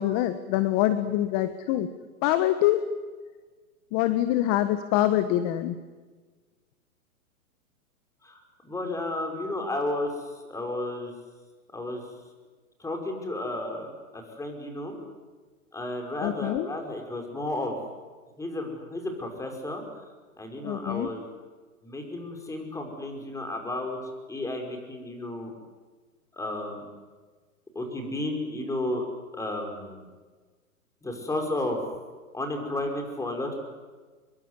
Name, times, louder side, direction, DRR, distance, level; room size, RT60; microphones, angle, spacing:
voice 1, 0.0-1.9 2.2-2.8 3.9-5.8 16.2-16.7 20.6-21.1, left 13 dB, 30° left, 11 dB, 1.3 m, -25 dB
voice 2, 8.2-11.1 11.7-12.0 12.8-15.0 15.7-17.8 18.4-20.1 20.4-21.3 21.8-25.5 26.3-26.9 27.8-29.1 29.3-30.1 31.0-31.8 32.3-33.6, left 1 dB, 5° left, 3 dB, 5.4 m, -33 dB
26.0 x 23.5 x 9.6 m, 1.4 s
hypercardioid pair, 135°, 43 cm